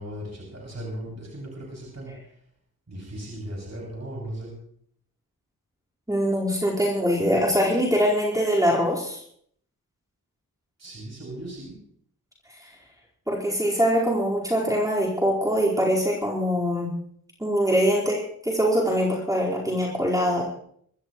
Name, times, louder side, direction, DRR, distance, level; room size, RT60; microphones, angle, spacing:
voice 1, 0.0-2.1 2.9-4.5 10.8-11.8, right 1 dB, 45° right, -4 dB, 7.1 m, -37 dB
voice 2, 6.1-9.2 13.3-16.9 17.4-18.2 18.4-20.4, equal, 10° right, -4 dB, 4.8 m, -23 dB
26.0 x 13.0 x 3.2 m, 0.64 s
cardioid pair, 55°, 37 cm